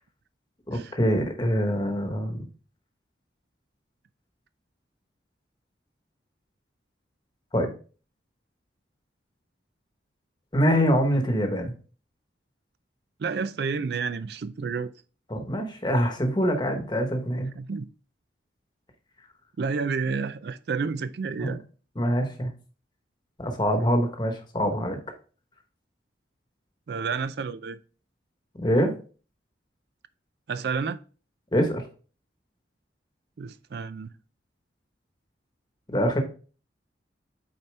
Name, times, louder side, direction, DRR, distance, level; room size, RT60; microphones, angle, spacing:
voice 1, 0.7-2.4 7.5-7.7 10.5-11.7 15.3-17.5 21.4-21.6 22.0-22.5 23.4-25.0 28.6-28.9 31.5-31.8 35.9-36.2, equal, 25° left, 1.1 m, -24 dB
voice 2, 13.2-14.9 17.6-17.9 19.6-21.6 26.9-27.8 30.5-31.0 33.4-34.1, right 5 dB, 60° right, 0.4 m, -30 dB
8.5 x 4.2 x 3.3 m
head